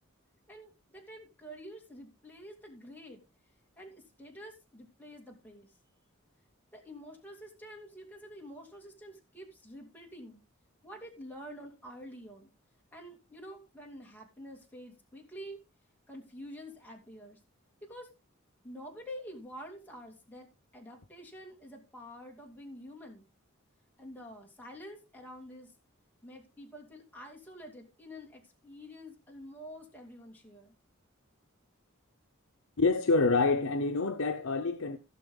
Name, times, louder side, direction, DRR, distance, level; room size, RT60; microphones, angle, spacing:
voice 1, 0.5-3.2 3.8-5.7 6.7-10.4 10.8-12.5 12.9-15.6 16.1-17.4 17.8-18.1 18.6-20.5 20.7-23.2 24.0-25.7 26.2-30.8, equal, 10° left, 2.6 m, -48 dB
voice 2, 32.8-35.0, left 3 dB, 75° left, 0.8 m, -27 dB
17.0 x 6.1 x 3.8 m
head